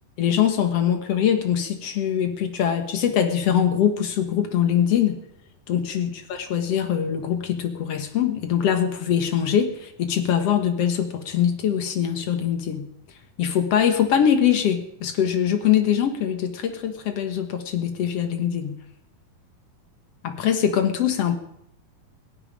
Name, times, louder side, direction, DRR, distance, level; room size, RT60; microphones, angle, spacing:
voice 1, 0.2-5.2 5.7-12.9 13.4-18.8 20.2-21.4, left 9 dB, 60° left, 6 dB, 1.8 m, -23 dB
17.5 x 7.4 x 9.9 m, 0.76 s
omnidirectional pair, 4.3 m